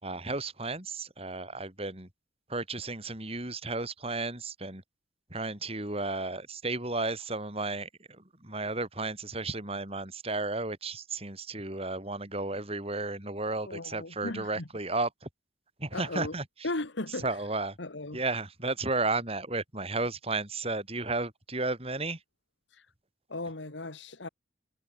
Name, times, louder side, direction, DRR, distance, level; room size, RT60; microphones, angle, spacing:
voice 1, 0.0-2.1 2.5-4.8 5.3-15.3 15.8-16.7 17.1-17.8 18.1-22.2, right 3 dB, 30° right, 4.9 m, -33 dB
voice 2, 13.7-14.6 15.9-16.3 16.6-17.2 17.8-18.2 22.7-22.9 23.3-24.3, left 2 dB, 80° left, 2.0 m, -36 dB
head